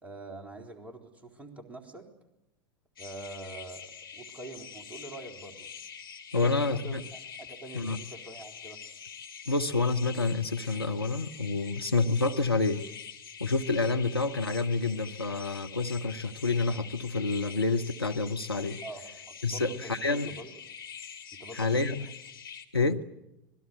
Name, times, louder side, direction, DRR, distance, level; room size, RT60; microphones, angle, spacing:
voice 1, 0.0-2.1 3.0-5.7 6.3-8.8 18.8-19.9 20.3-20.5 21.3-21.9 22.8-22.9, right 2 dB, 10° right, 2 dB, 3.9 m, -45 dB
sound 1, 3.0-22.7, left 7 dB, 70° left, 2.6 m, -45 dB
voice 2, 6.3-7.0 7.7-8.0 9.5-12.9 13.4-18.8 19.4-20.3 21.5-22.1 22.7-23.0, left 3 dB, 90° left, 4 dB, 1.0 m, -28 dB
26.5 x 20.0 x 8.1 m, 0.90 s
figure-of-eight pair, 85°, 12 cm